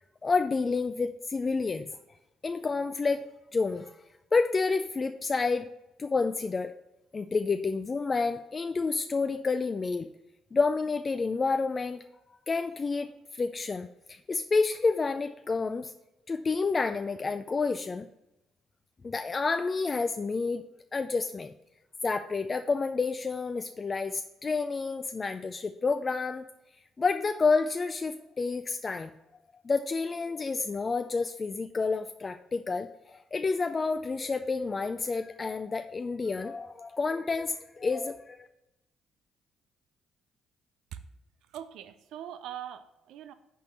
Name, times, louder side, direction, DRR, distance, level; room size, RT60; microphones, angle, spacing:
voice 1, 0.2-1.9 2.4-3.2 3.5-4.0 4.3-5.7 6.0-6.7 7.1-10.1 10.5-12.0 12.5-15.9 16.3-18.1 19.0-20.6 20.9-21.5 22.0-26.4 27.0-29.1 29.6-38.5, left 4 dB, 35° left, 8 dB, 0.4 m, -29 dB
voice 2, 41.5-43.3, right 10 dB, 80° right, 11 dB, 0.4 m, -42 dB
5.3 x 4.3 x 6.1 m, 0.93 s
supercardioid pair, 60°, 0 cm